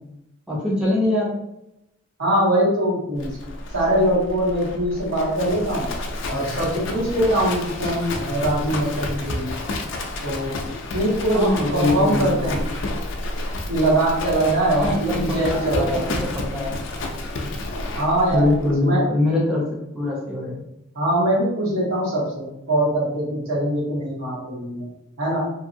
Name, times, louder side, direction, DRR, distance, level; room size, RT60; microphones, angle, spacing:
voice 1, 0.5-1.3 11.3-12.5 14.7-16.7 18.3-20.6, left 1 dB, 5° right, -5 dB, 0.5 m, -23 dB
voice 2, 2.2-3.3 3.7-5.9 6.3-9.6 10.2-10.6 10.9-12.7 13.7-16.0 17.9-19.0 20.9-24.9 25.2-25.4, right 1 dB, 80° right, -6 dB, 1.4 m, -22 dB
Livestock farm animals working animals, 3.2-18.7, left 2 dB, 60° left, 0.4 m, -30 dB
2.7 x 2.6 x 2.6 m, 0.86 s
head